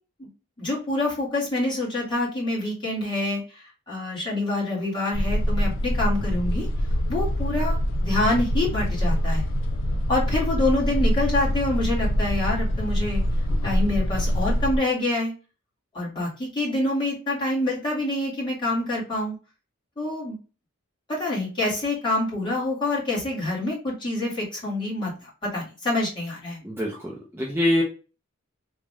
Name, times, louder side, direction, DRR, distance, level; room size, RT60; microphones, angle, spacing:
voice 1, 0.6-6.7 7.1-7.8 8.0-9.5 10.1-13.2 13.6-15.3 15.9-19.3 20.0-20.4 21.1-26.6, left 2 dB, 25° left, -5 dB, 1.9 m, -26 dB
sound 1, 5.1-14.8, equal, 70° left, 0.6 m, -24 dB
voice 2, 26.6-27.8, left 1 dB, 10° right, -3 dB, 0.6 m, -24 dB
3.7 x 2.6 x 3.2 m, 0.34 s
head